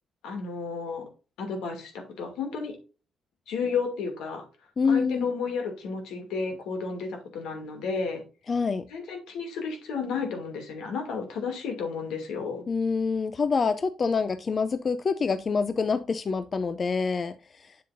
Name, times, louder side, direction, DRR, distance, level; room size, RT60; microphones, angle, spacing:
voice 1, 0.2-1.1 1.4-2.8 3.5-4.4 4.9-8.2 8.9-12.6, left 5 dB, 85° left, 2.5 m, -32 dB
voice 2, 4.8-5.3 8.5-8.8 12.7-17.7, left 5 dB, 40° left, 0.5 m, -26 dB
7.7 x 7.4 x 2.6 m
cardioid pair, 90°, 0 cm